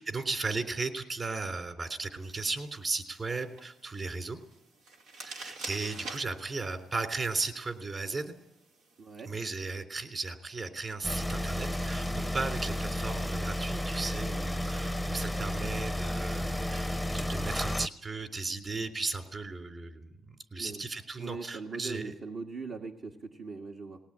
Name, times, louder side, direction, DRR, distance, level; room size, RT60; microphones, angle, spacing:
voice 1, 0.0-4.4 5.2-8.3 9.2-22.1, right 3 dB, 35° right, 7 dB, 3.3 m, -36 dB
sound 1, 2.2-9.6, right 3 dB, 90° right, 2.3 m, -48 dB
voice 2, 9.0-9.3 20.6-20.8 21.2-24.0, right 4 dB, 60° right, 0 dB, 1.8 m, -40 dB
sound 2, 11.0-17.9, left 1 dB, ahead, 0.7 m, -32 dB
19.5 x 18.5 x 8.8 m, 0.86 s
cardioid pair, 90°, 0 cm